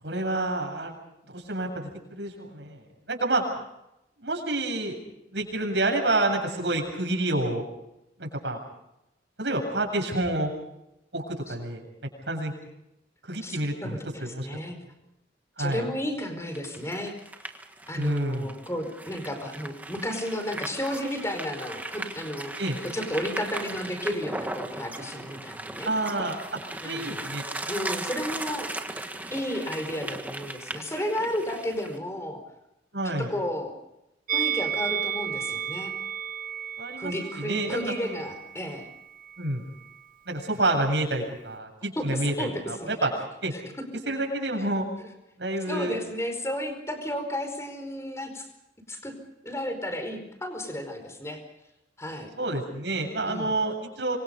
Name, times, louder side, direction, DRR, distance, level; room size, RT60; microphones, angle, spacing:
voice 1, 0.0-0.9 1.3-1.9 2.2-3.4 4.2-5.0 5.3-7.6 8.2-8.6 9.4-10.5 11.1-11.8 12.3-12.5 13.2-14.5 15.6-15.9 18.0-18.5 22.6-22.8 25.9-26.4 26.8-27.4 32.9-33.3 36.8-37.1 37.4-38.2 39.4-39.6 40.3-43.1 43.4-43.5 44.1-44.9 45.4-46.0 52.4-54.2, right 2 dB, 75° right, 1 dB, 7.5 m, -28 dB
voice 2, 13.4-14.8 15.6-17.1 17.9-22.5 22.9-25.9 26.8-27.2 27.7-28.7 29.3-32.4 33.0-33.7 34.3-35.9 37.0-38.9 42.0-42.9 45.0-45.1 45.7-48.5 48.9-49.1 49.4-51.4 52.0-52.3 53.2-53.5, equal, 15° left, 7 dB, 4.8 m, -33 dB
sound 1, 16.5-32.0, right 2 dB, 10° right, 1.6 m, -37 dB
Musical instrument, 34.3-39.5 39.8-40.0, right 8 dB, 50° right, 1.0 m, -33 dB
26.5 x 24.5 x 5.4 m, 0.87 s
head